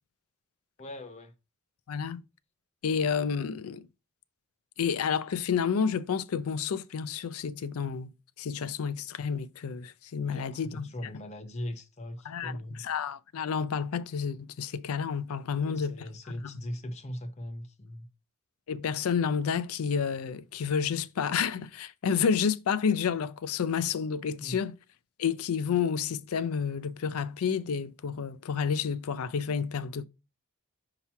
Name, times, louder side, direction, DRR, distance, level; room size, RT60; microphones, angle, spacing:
voice 1, 0.8-1.3 10.3-12.8 15.6-18.1 24.4-24.6, left 1 dB, 30° left, 0.7 m, -40 dB
voice 2, 1.9-2.2 2.8-3.9 4.8-8.1 8.4-10.9 12.2-16.0 16.4-16.6 18.7-24.7 25.2-30.1, left 6 dB, 85° left, 0.4 m, -30 dB
5.7 x 2.9 x 5.6 m
head